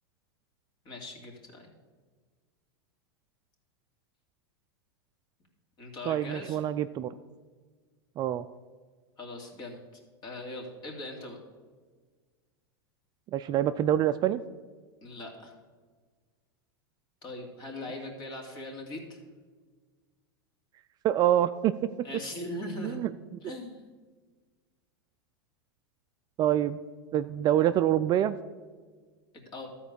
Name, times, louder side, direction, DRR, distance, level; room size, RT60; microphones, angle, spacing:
voice 1, 0.8-1.7 5.8-6.6 9.2-9.8 10.2-11.4 15.0-15.6 17.2-19.2 22.0-23.0 23.4-23.8 29.3-29.7, left 1 dB, 35° left, 1 dB, 2.5 m, -40 dB
voice 2, 6.0-7.1 8.2-8.5 13.3-14.4 21.0-21.7 22.8-23.6 26.4-26.8 27.1-28.4, right 11 dB, 35° right, 11 dB, 0.3 m, -26 dB
13.0 x 4.5 x 6.9 m, 1.5 s
hypercardioid pair, 110°, 13 cm